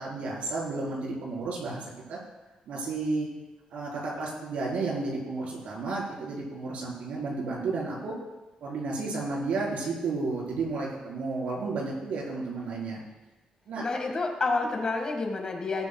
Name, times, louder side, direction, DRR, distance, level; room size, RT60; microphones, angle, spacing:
voice 1, 0.0-2.2 2.7-3.3 3.7-8.1 8.6-13.0 13.7-13.8, right 3 dB, 80° right, -3 dB, 4.3 m, -32 dB
voice 2, 13.8-15.9, left 3 dB, 35° left, 3 dB, 1.8 m, -29 dB
18.5 x 9.4 x 2.3 m, 1.1 s
cardioid pair, 130°, 2 cm